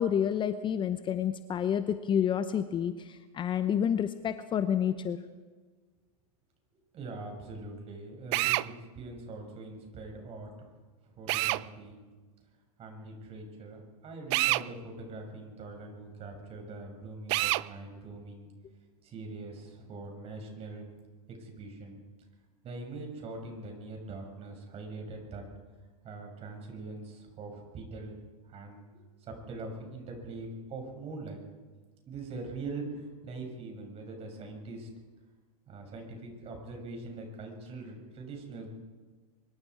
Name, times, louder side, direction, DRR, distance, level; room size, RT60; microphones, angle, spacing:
voice 1, 0.0-5.2, left 8 dB, 25° left, 11 dB, 0.9 m, -29 dB
voice 2, 6.9-10.7 11.0-12.0 12.8-18.5 19.0-20.8 21.3-22.0 22.6-25.5 26.0-28.1 28.4-28.8 29.2-31.4 32.1-34.9 35.7-38.7, right 3 dB, 30° right, 2 dB, 6.8 m, -42 dB
Drill, 8.3-8.7 11.3-11.6 14.3-14.7 17.3-17.7, right 22 dB, 50° right, 0.5 m, -27 dB
24.5 x 22.5 x 4.9 m, 1.4 s
hypercardioid pair, 105°, 20 cm